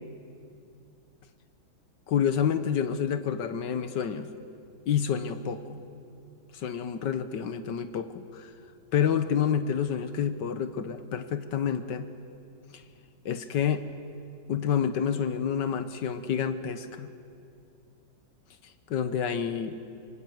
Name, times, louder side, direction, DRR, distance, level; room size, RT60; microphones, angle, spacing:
voice 1, 2.1-4.3 4.9-5.8 6.5-8.5 8.9-12.1 12.7-12.8 13.2-13.8 14.5-17.1 18.6-19.8, left 8 dB, 85° left, 10 dB, 1.7 m, -28 dB
26.0 x 24.5 x 9.3 m, 2.5 s
omnidirectional pair, 1.9 m